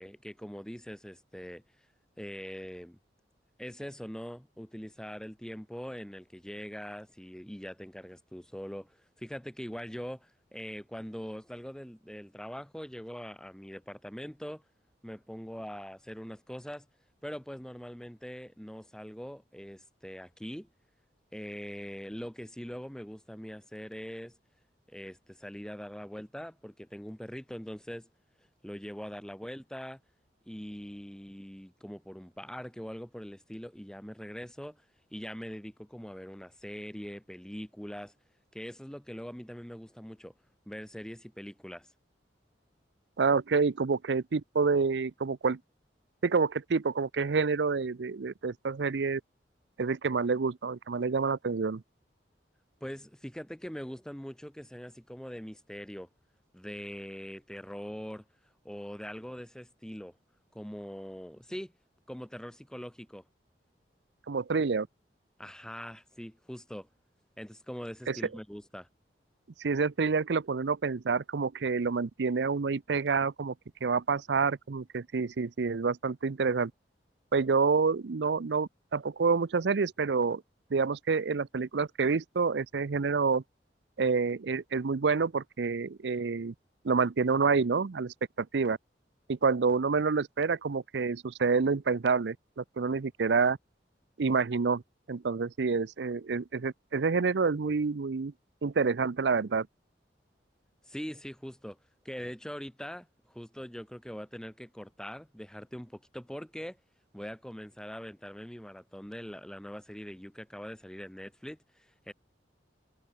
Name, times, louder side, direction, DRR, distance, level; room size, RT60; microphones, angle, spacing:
voice 1, 0.0-1.6 2.2-3.0 3.6-14.6 15.0-16.9 17.2-20.7 21.3-24.3 24.9-28.1 28.6-30.0 30.5-34.8 35.1-38.1 38.5-40.3 40.7-41.9 52.8-56.1 56.5-58.2 58.6-60.1 60.5-61.7 62.1-63.2 65.4-66.9 67.4-68.9 100.9-101.8 102.0-106.8 107.1-112.1, equal, 5° left, 1.0 m, -42 dB
voice 2, 43.2-45.6 46.2-49.2 49.8-51.8 64.3-64.9 68.1-68.2 69.6-73.5 73.8-76.7 77.3-80.4 80.7-83.4 84.0-86.5 86.8-88.8 89.3-93.6 94.2-94.8 95.1-98.3 98.6-99.7, right 4 dB, 80° right, 0.6 m, -28 dB
head